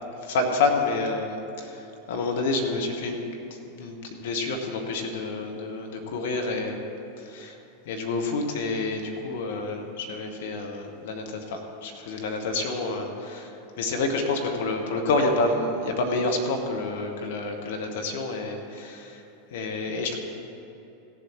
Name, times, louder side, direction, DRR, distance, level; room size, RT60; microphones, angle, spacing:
voice 1, 0.2-1.8 2.1-3.2 3.8-6.8 7.3-7.6 7.9-19.2 19.5-20.2, left 3 dB, 55° left, 3 dB, 1.4 m, -28 dB
16.0 x 7.5 x 4.4 m, 3.0 s
figure-of-eight pair, 85°, 0 cm